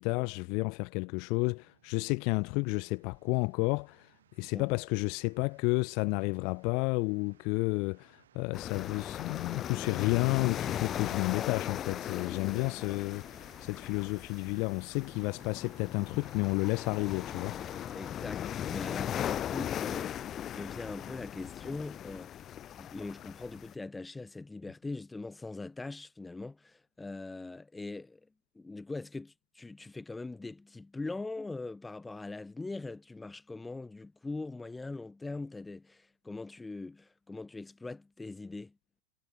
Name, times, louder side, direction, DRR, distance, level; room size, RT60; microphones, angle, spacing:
voice 1, 0.0-4.1 4.4-13.2 13.6-17.6, left 32 dB, 45° left, 0.4 m, -31 dB
sound 1, 1.5-19.3, right 10 dB, 60° right, 7.5 m, -63 dB
sound 2, 8.5-23.7, left 10 dB, 30° left, 2.5 m, -38 dB
voice 2, 17.9-22.5 22.7-28.2 28.6-38.7, left 3 dB, 10° left, 3.8 m, -42 dB
figure-of-eight pair, 90°, 0 cm